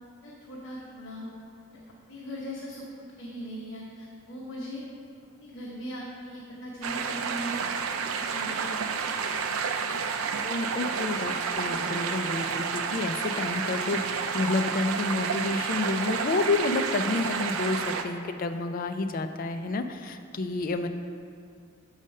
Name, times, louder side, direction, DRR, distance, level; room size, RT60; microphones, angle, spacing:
voice 1, 0.2-1.3 1.7-1.8 2.1-4.8 5.4-7.8 8.1-9.1 9.9-10.0, equal, 65° left, -4 dB, 0.9 m, -39 dB
sound 1, 6.8-18.0, right 6 dB, 85° right, 0.5 m, -30 dB
voice 2, 10.4-20.9, left 3 dB, 40° left, 7 dB, 0.4 m, -29 dB
6.4 x 4.9 x 5.4 m, 2.3 s
head